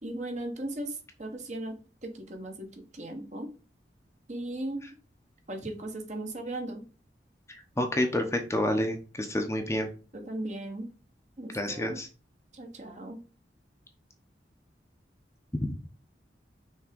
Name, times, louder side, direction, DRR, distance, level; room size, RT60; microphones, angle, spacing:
voice 1, 0.0-3.5 4.3-4.9 5.5-6.9 10.1-10.9 11.4-12.0 12.5-13.2, right 1 dB, 40° right, 3 dB, 1.4 m, -37 dB
voice 2, 7.8-9.9 11.5-12.1 15.5-15.8, left 1 dB, 15° left, 4 dB, 0.9 m, -28 dB
6.1 x 3.7 x 5.2 m, 0.34 s
head